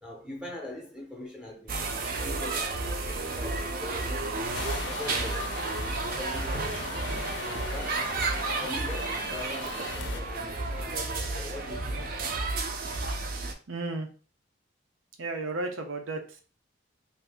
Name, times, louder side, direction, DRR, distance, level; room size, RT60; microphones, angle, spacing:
voice 1, 0.0-1.9 2.2-3.0 3.2-6.8 7.4-8.1 8.6-12.4, left 1 dB, 5° right, 0.6 m, -42 dB
sound 1, 1.7-13.5, right 3 dB, 50° right, 0.4 m, -32 dB
sound 2, 4.5-10.2, left 4 dB, 65° left, 0.5 m, -40 dB
voice 2, 13.7-14.1 15.2-16.4, right 2 dB, 90° right, 0.7 m, -33 dB
2.6 x 2.5 x 3.5 m
head